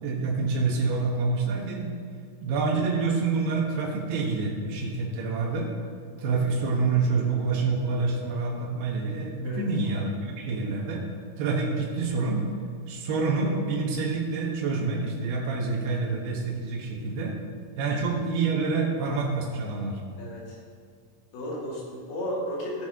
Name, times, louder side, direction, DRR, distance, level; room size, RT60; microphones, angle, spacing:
voice 1, 0.0-1.9 2.4-5.7 6.2-11.0 11.4-12.4 12.9-17.3 17.8-20.0, right 4 dB, 90° right, -3 dB, 3.5 m, -27 dB
voice 2, 20.2-20.6 21.3-22.9, equal, 75° left, -4 dB, 3.9 m, -34 dB
17.0 x 6.1 x 3.7 m, 2.1 s
omnidirectional pair, 4.5 m